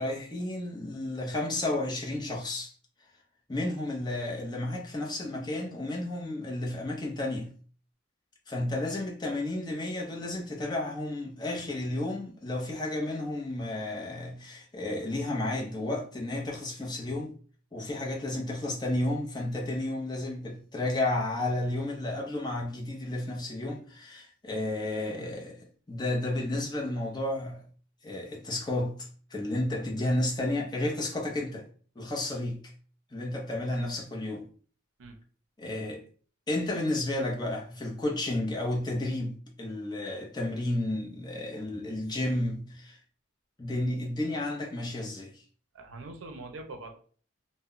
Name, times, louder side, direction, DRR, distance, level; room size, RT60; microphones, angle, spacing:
voice 1, 0.0-2.7 3.5-7.5 8.5-17.3 17.7-27.7 28.0-31.6 32.0-32.6 33.1-34.5 35.6-36.0 36.5-43.0 43.6-45.4, left 1 dB, 20° left, 0.6 m, -32 dB
voice 2, 45.7-47.0, right 2 dB, 65° right, 0.5 m, -43 dB
2.2 x 2.0 x 3.6 m
head